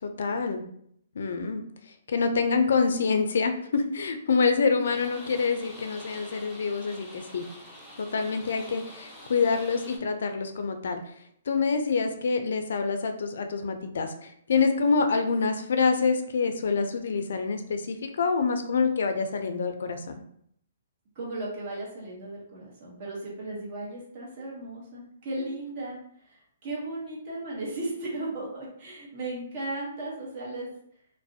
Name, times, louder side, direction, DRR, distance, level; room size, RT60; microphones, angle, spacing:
voice 1, 0.0-0.6 1.2-1.6 2.1-7.4 8.0-11.0 11.5-20.0, left 4 dB, 70° left, 7 dB, 0.3 m, -26 dB
sound 1, 4.8-10.0, equal, 5° right, 0.6 m, -46 dB
voice 2, 21.2-26.0 26.2-30.7, right 2 dB, 40° right, -4 dB, 0.9 m, -36 dB
2.4 x 2.0 x 2.6 m, 0.68 s
hypercardioid pair, 155°, 0 cm